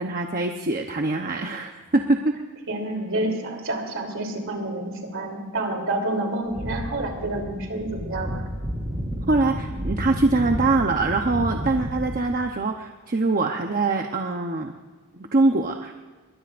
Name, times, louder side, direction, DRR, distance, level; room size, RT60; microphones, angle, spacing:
voice 1, 0.0-2.3 9.3-14.7 15.1-15.9, right 2 dB, 40° right, 3 dB, 0.9 m, -23 dB
voice 2, 2.7-8.4, right 2 dB, 60° right, 2 dB, 3.3 m, -28 dB
sound 1, 6.5-12.5, equal, 15° right, 4.7 m, -31 dB
22.5 x 20.5 x 2.6 m, 1.4 s
head